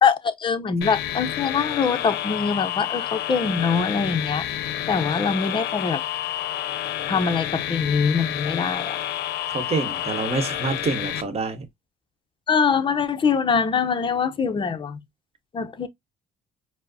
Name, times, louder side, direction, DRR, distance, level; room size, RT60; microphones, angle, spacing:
voice 1, 0.0-4.5 4.9-6.0 7.1-9.0 12.5-15.0 15.5-15.9, left 6 dB, 30° left, 0.6 m, -23 dB
sound 1, 0.8-11.2, left 12 dB, 85° left, 0.5 m, -29 dB
voice 2, 9.5-11.6, right 4 dB, 35° right, 0.9 m, -27 dB
4.7 x 2.0 x 2.6 m
cardioid pair, 110°, 17 cm